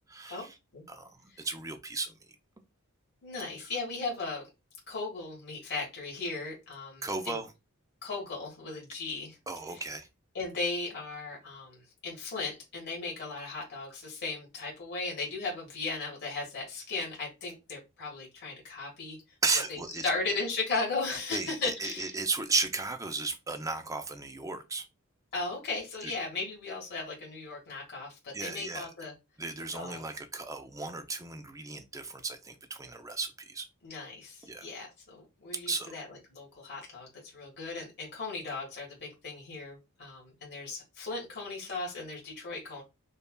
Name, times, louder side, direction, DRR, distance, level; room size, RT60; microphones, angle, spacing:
voice 1, 0.1-0.6 0.9-2.1 7.0-7.5 9.5-10.1 19.4-20.1 21.3-24.9 26.0-26.1 28.3-28.9 29.4-33.7 34.4-34.7 35.7-36.0, right 3 dB, 15° right, 0.5 m, -34 dB
voice 2, 3.2-4.5 4.9-7.4 8.0-9.4 9.7-9.8 10.3-19.2 19.7-22.1 25.3-29.1 29.7-30.0 33.8-42.8, left 3 dB, 50° left, 1.4 m, -37 dB
5.3 x 2.3 x 2.2 m
head